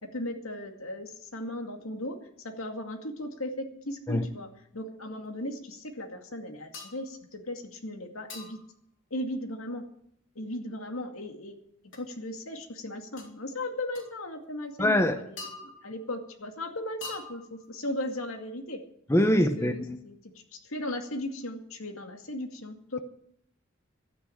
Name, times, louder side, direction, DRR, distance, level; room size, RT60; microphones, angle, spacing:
voice 1, 0.0-2.2 2.4-4.5 4.7-8.6 9.1-9.8 10.4-11.6 11.9-18.8 19.6-23.0, left 1 dB, 80° left, 2.3 m, -37 dB
sound 1, 6.7-7.1 8.3-8.7 11.9-12.0 13.2-13.3 13.9-14.1 15.4-16.0 17.0-17.7, left 3 dB, 60° left, 3.6 m, -43 dB
voice 2, 14.8-15.2 19.1-20.0, left 1 dB, 15° left, 0.8 m, -23 dB
13.0 x 9.7 x 8.5 m
head